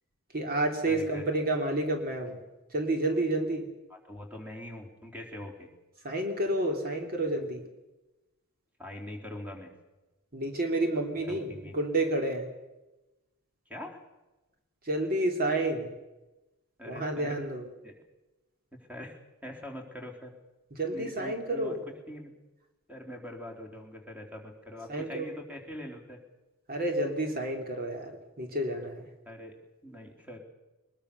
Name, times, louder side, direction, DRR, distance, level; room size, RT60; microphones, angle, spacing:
voice 1, 0.3-2.4 2.7-3.7 6.0-7.6 10.3-12.5 14.8-15.9 16.9-17.7 20.8-21.8 24.9-25.2 26.7-28.1 28.4-29.0, right 1 dB, 45° right, 3 dB, 2.8 m, -30 dB
voice 2, 0.9-1.3 3.9-5.7 8.8-9.8 11.3-11.8 13.7-14.0 16.8-17.4 17.8-17.9 18.9-20.3 20.9-21.8 22.1-22.3 22.9-26.2 29.3-29.5 29.8-30.4, left 1 dB, 5° right, 3 dB, 3.6 m, -43 dB
22.5 x 21.5 x 6.7 m, 1.1 s
head